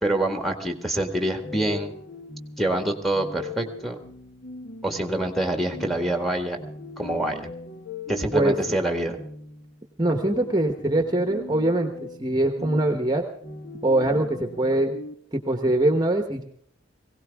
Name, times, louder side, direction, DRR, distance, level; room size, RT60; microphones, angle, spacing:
voice 1, 0.0-1.9 2.6-4.0 4.8-6.6 7.0-7.5 8.1-9.2, right 1 dB, ahead, 4 dB, 1.7 m, -26 dB
sound 1, 1.4-15.1, left 3 dB, 55° left, 1.3 m, -40 dB
voice 2, 10.0-13.2 13.8-14.9 15.3-16.4, right 1 dB, 20° right, 5 dB, 1.1 m, -23 dB
20.0 x 17.0 x 3.5 m, 0.65 s
head